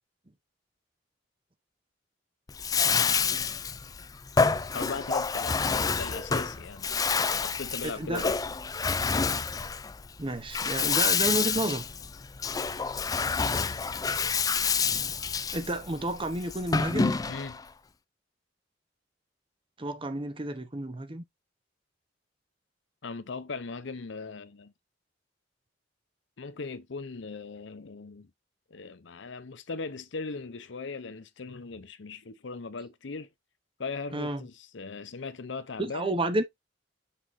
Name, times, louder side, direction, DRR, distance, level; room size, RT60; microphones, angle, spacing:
Bathtub (filling or washing), 2.5-17.6, left 5 dB, 20° left, 0.4 m, -28 dB
voice 1, 4.7-6.9 7.4-8.4 17.3-17.6 23.0-24.7 26.4-28.3 28.7-33.3 33.8-36.2, left 4 dB, 80° left, 0.7 m, -38 dB
voice 2, 7.8-8.2 10.2-11.8 15.5-17.2 19.8-21.2 34.1-34.4 35.8-36.4, right 1 dB, 30° right, 0.9 m, -31 dB
6.4 x 5.9 x 2.6 m
head